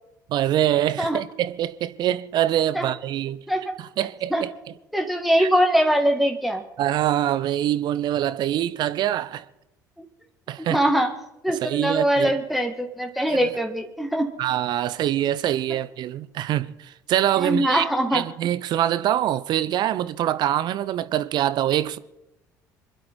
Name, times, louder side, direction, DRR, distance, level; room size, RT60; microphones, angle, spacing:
voice 1, 0.3-3.4 3.8-4.5 5.4-5.5 6.8-9.4 10.5-10.8 11.5-12.3 13.3-13.4 14.4-17.8 18.1-22.0, right 12 dB, 50° right, 0.8 m, -24 dB
voice 2, 4.9-6.6 10.6-11.1 11.4-14.3 17.4-18.2, equal, ahead, 2.0 m, -22 dB
26.5 x 11.5 x 4.5 m
figure-of-eight pair, 55°, 10 cm